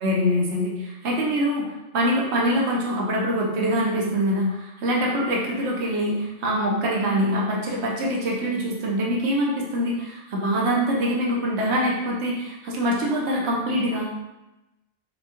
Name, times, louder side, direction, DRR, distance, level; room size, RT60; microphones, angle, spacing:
voice 1, 0.0-1.7 1.9-14.1, equal, 70° right, -3 dB, 1.2 m, -24 dB
6.9 x 2.3 x 3.0 m, 0.97 s
omnidirectional pair, 1.2 m